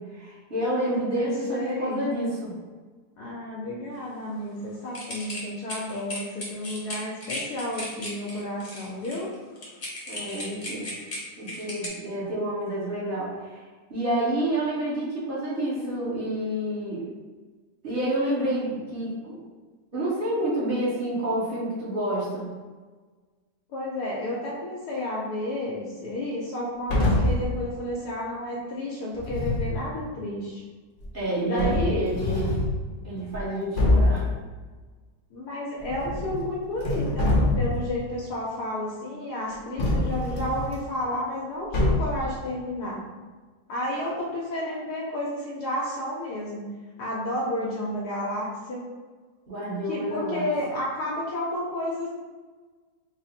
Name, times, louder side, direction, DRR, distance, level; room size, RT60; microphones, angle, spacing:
voice 1, 0.0-2.5 10.1-10.9 11.4-13.6 13.9-17.0 17.8-19.4 19.9-22.5 31.1-32.5 33.0-34.3 49.5-50.5, right 1 dB, 35° right, -9 dB, 1.1 m, -29 dB
voice 2, 0.8-2.1 3.2-9.3 23.7-30.6 31.4-32.1 35.3-43.1 43.7-46.7 47.0-48.8 49.9-52.1, left 1 dB, 75° left, -5 dB, 1.2 m, -31 dB
sound 1, 4.9-11.9, left 1 dB, 40° left, 0.9 m, -36 dB
sound 2, 26.9-27.5 29.1-29.8 31.0-31.1 31.6-32.8 33.3-33.4 33.8-34.2 35.8-36.5 36.8-37.9 39.8-40.7 41.7-42.3, left 1 dB, 55° left, 0.6 m, -24 dB
3.7 x 2.0 x 4.2 m, 1.4 s
omnidirectional pair, 1.8 m